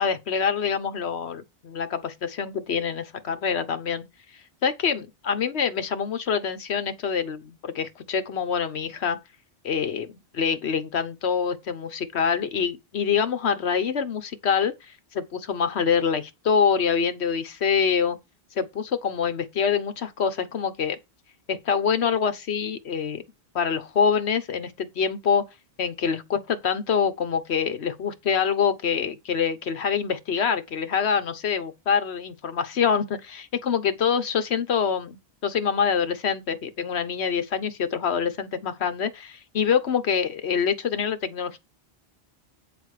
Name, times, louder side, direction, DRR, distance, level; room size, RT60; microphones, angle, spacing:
voice 1, 0.0-4.0 4.6-9.2 9.6-18.2 18.6-21.0 21.5-23.2 23.5-25.5 25.8-35.2 35.4-41.6, left 6 dB, 85° left, 1.3 m, -25 dB
8.8 x 3.5 x 6.4 m
omnidirectional pair, 1.1 m